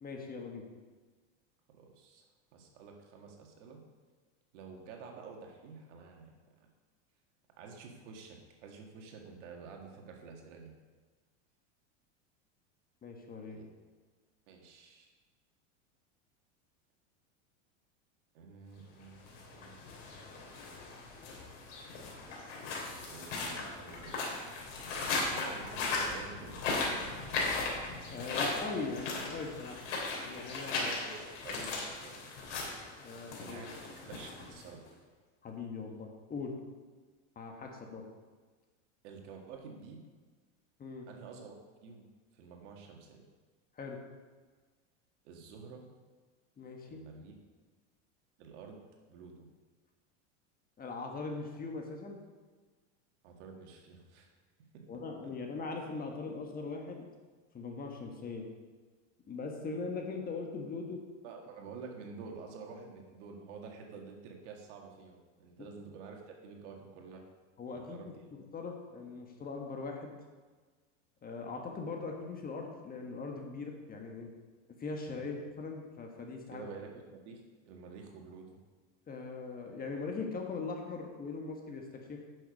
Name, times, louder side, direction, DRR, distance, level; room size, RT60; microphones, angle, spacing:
voice 1, 0.0-0.6 13.0-13.6 28.1-29.8 30.2-30.9 33.0-33.6 35.4-36.5 37.3-38.1 40.8-41.1 43.8-44.0 46.6-47.0 50.8-52.2 54.9-57.0 57.5-58.4 59.3-61.0 67.6-68.0 68.3-70.1 71.2-74.3 74.8-76.6 79.1-82.3, left 4 dB, 25° left, 2 dB, 1.5 m, -40 dB
voice 2, 1.7-2.3 2.5-3.8 4.5-6.3 7.6-10.7 13.5-13.9 14.5-15.1 18.3-19.9 23.1-24.2 25.1-27.3 30.7-32.4 33.3-33.8 34.0-34.8 39.0-40.0 41.1-41.6 41.8-42.1 42.3-43.3 45.2-45.8 46.9-47.3 48.4-48.8 49.1-49.5 53.2-54.3 54.7-54.8 55.2-55.3 61.2-67.2 67.7-68.1 75.1-75.3 76.5-78.6, right 5 dB, 70° right, 2 dB, 2.1 m, -49 dB
sound 1, 19.2-34.9, left 3 dB, 75° left, 3.2 m, -37 dB
10.0 x 6.6 x 5.3 m, 1.4 s
supercardioid pair, 125°, 37 cm